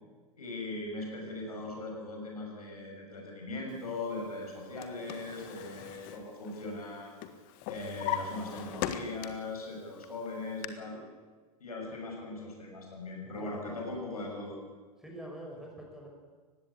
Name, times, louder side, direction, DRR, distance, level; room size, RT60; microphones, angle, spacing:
voice 1, 0.4-7.2 7.7-11.0 11.6-14.6, left 2 dB, 75° left, 0 dB, 6.8 m, -39 dB
Drawer open or close, 4.5-6.9 7.2-9.6 10.0-10.7, left 11 dB, 45° left, 1.6 m, -39 dB
voice 2, 13.2-13.8 15.0-16.1, right 1 dB, ahead, 0 dB, 5.8 m, -46 dB
19.5 x 16.0 x 8.5 m, 1.4 s
figure-of-eight pair, 90°, 19 cm